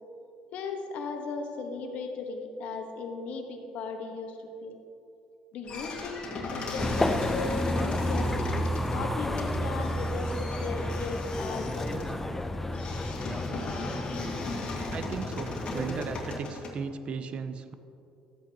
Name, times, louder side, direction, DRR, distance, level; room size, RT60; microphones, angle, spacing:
voice 1, 0.5-4.7 5.5-6.2 6.5-8.3 8.9-11.9 12.7-12.8, left 4 dB, 65° left, 3 dB, 1.3 m, -36 dB
sound 1, 5.7-16.7, left 3 dB, 45° left, 1.9 m, -38 dB
sound 2, 6.8-16.4, left 1 dB, 10° left, 0.5 m, -31 dB
voice 2, 14.9-17.7, right 5 dB, 45° right, 10 dB, 0.6 m, -36 dB
13.0 x 8.2 x 2.9 m, 2.7 s
supercardioid pair, 85°, 3 cm